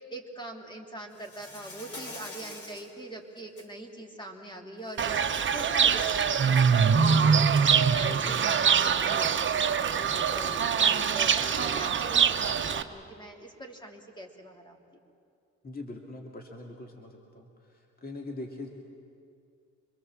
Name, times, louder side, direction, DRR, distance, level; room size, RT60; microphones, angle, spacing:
voice 1, 0.1-14.8, right 1 dB, 15° left, 2 dB, 3.1 m, -43 dB
Insect, 1.1-2.9 3.4-3.7 4.9-6.8, left 2 dB, 50° left, 4.1 m, -46 dB
Fowl / Bird, 5.0-12.8, right 6 dB, 40° right, 1.0 m, -24 dB
voice 2, 15.6-17.5 18.0-18.7, left 2 dB, 30° left, 1 dB, 2.3 m, -41 dB
25.5 x 22.0 x 7.5 m, 2.4 s
cardioid pair, 90°, 30 cm